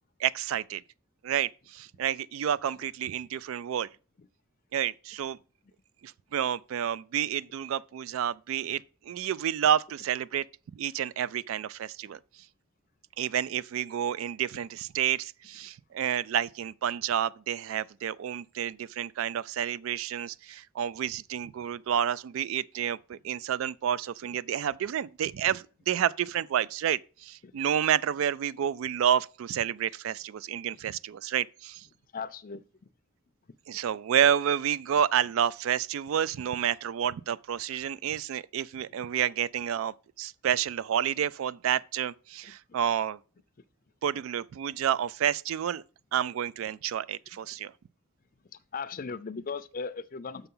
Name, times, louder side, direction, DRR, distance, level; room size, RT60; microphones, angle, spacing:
voice 1, 0.2-0.8 1.2-3.9 4.7-5.4 6.0-8.8 9.1-10.4 10.7-12.2 13.2-31.9 33.7-43.2 44.0-45.8 46.1-47.7, right 9 dB, 70° right, 0.3 m, -29 dB
voice 2, 32.1-32.9 33.4-33.5 38.9-39.0 42.4-42.8 48.4-50.5, left 5 dB, 40° left, 0.5 m, -39 dB
6.8 x 5.6 x 5.4 m
head